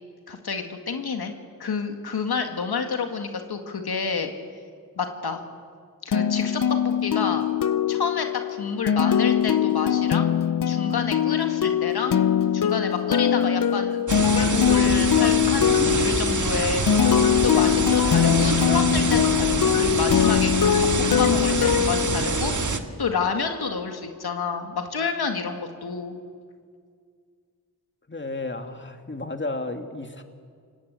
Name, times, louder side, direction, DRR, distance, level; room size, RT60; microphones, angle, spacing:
voice 1, 0.3-1.3 1.6-4.3 5.0-5.4 6.0-7.4 7.9-10.3 10.7-12.2 12.5-16.8 17.4-20.9 21.2-22.5 23.0-26.2, left 5 dB, 90° left, 5 dB, 2.1 m, -29 dB
sound 1, 6.1-22.8, left 9 dB, 60° left, 0.7 m, -22 dB
sound 2, 14.1-22.8, right 4 dB, 55° right, 1.8 m, -26 dB
voice 2, 28.1-30.2, left 2 dB, 30° left, 6 dB, 2.4 m, -32 dB
28.5 x 18.0 x 8.3 m, 2.1 s
cardioid pair, 45°, 37 cm